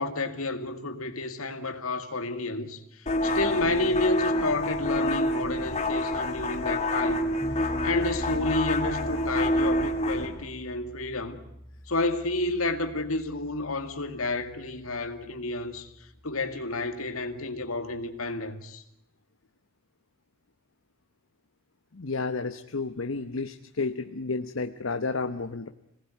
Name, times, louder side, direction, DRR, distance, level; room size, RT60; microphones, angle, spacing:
voice 1, 0.0-7.3 7.6-11.4 11.9-15.9 16.2-18.8, left 2 dB, 90° left, 2.2 m, -30 dB
sound 1, 3.1-10.3, left 1 dB, 30° left, 3.3 m, -27 dB
sound 2, 7.4-18.3, equal, 10° right, 5.3 m, -44 dB
voice 2, 21.9-25.7, left 3 dB, 70° left, 1.0 m, -31 dB
26.5 x 19.0 x 9.3 m
head